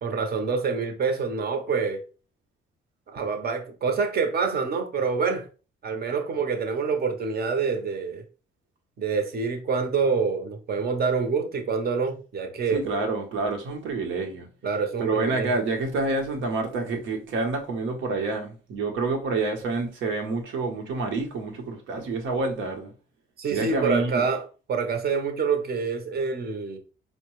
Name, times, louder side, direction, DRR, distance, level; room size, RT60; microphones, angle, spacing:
voice 1, 0.0-2.0 3.1-5.5 5.8-8.2 9.0-13.0 14.6-15.6 23.4-26.8, right 5 dB, 50° right, 0.9 m, -26 dB
voice 2, 12.7-14.5 15.0-22.9 23.5-24.2, right 3 dB, 80° right, 1.0 m, -28 dB
4.4 x 2.2 x 3.1 m
cardioid pair, 90°, 20 cm